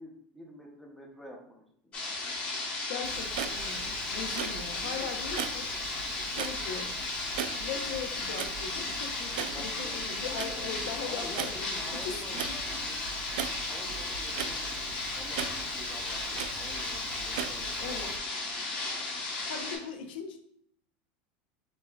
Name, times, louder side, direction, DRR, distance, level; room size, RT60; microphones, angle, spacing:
voice 1, 0.0-2.1 4.8-5.1 9.5-13.0 13.7-18.4 18.7-19.1, equal, ahead, -1 dB, 0.6 m, -48 dB
sound 1, 1.9-19.8, left 3 dB, 25° left, 1.0 m, -35 dB
voice 2, 2.9-5.7 6.2-6.9 7.5-12.6 17.8-18.1 19.5-20.4, left 6 dB, 85° left, 6 dB, 0.7 m, -40 dB
Clock, 3.0-18.2, right 8 dB, 75° right, 0.4 m, -40 dB
7.1 x 2.6 x 2.3 m, 0.68 s
supercardioid pair, 175°, 5 cm